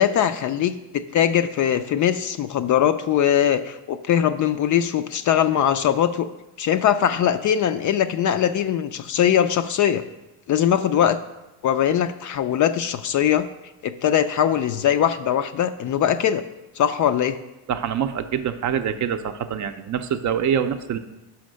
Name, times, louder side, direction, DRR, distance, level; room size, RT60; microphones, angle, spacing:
voice 1, 0.0-6.3 6.6-10.0 10.5-11.2 11.6-13.5 13.8-16.4 16.8-17.4, left 9 dB, 45° left, 11 dB, 0.4 m, -21 dB
voice 2, 17.7-21.0, right 8 dB, 40° right, 9 dB, 0.5 m, -25 dB
5.7 x 5.2 x 6.2 m, 0.98 s
cardioid pair, 105°, 44 cm